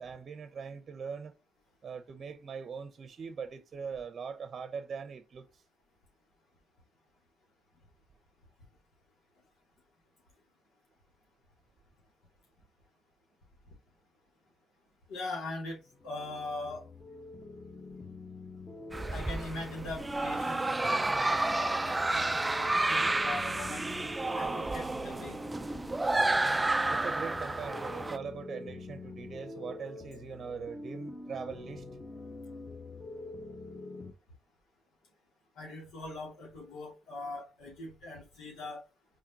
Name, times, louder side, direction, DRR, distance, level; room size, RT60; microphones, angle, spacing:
voice 1, 0.0-1.3 1.8-5.6 26.9-31.8, right 6 dB, 45° right, 0.7 m, -41 dB
voice 2, 15.1-16.9 19.1-23.8 24.3-25.4 35.6-38.8, left 2 dB, 85° left, 2.3 m, -41 dB
sound 1, 15.8-34.1, left 2 dB, 20° left, 1.3 m, -45 dB
sound 2, 18.9-28.2, right 2 dB, 15° right, 0.3 m, -31 dB
5.0 x 3.7 x 2.8 m
cardioid pair, 90°, 0 cm